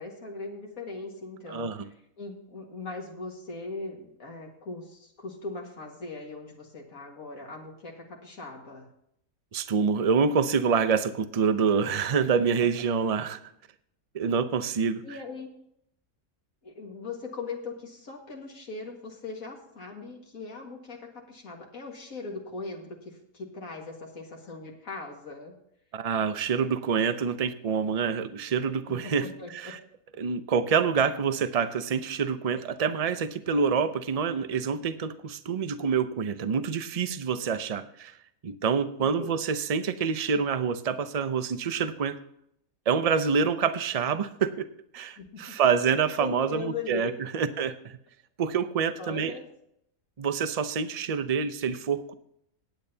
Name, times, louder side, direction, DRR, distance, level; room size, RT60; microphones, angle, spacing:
voice 1, 0.0-1.9 2.2-8.9 15.0-15.5 16.6-25.5 29.0-29.1 29.4-29.7 39.0-39.3 45.2-45.6 46.2-47.1 49.0-49.4, left 3 dB, 75° left, 0 dB, 2.3 m, -39 dB
voice 2, 1.5-1.9 9.5-13.4 14.1-15.2 25.9-29.8 30.2-38.2 38.4-42.2 42.9-44.7 44.9-48.0 48.4-49.3 50.2-52.1, right 6 dB, 45° right, 11 dB, 0.5 m, -27 dB
18.0 x 8.9 x 2.8 m, 0.73 s
omnidirectional pair, 1.5 m